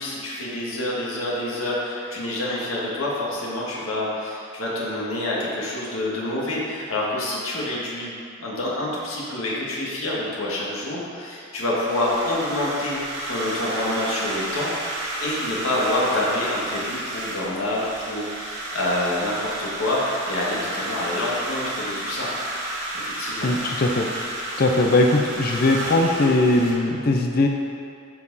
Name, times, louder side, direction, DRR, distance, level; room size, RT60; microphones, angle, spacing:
voice 1, 0.0-8.1 8.4-22.3 22.9-23.5, left 1 dB, 90° left, -6 dB, 1.9 m, -27 dB
sound 1, 11.9-26.7, right 1 dB, 65° right, 2.0 m, -31 dB
voice 2, 23.4-24.1 24.6-27.5, left 2 dB, 45° left, 2 dB, 0.6 m, -20 dB
12.5 x 4.8 x 4.1 m, 2.4 s
head